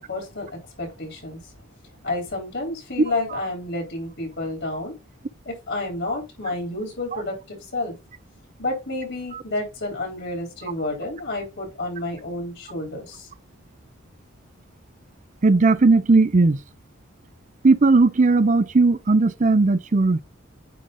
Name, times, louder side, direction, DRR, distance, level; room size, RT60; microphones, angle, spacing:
voice 1, 0.0-1.4 2.0-5.0 5.4-7.9 8.6-13.3, left 2 dB, 60° left, 3.4 m, -30 dB
voice 2, 15.4-16.6 17.6-20.2, right 3 dB, 40° right, 0.5 m, -17 dB
9.3 x 3.3 x 3.8 m
head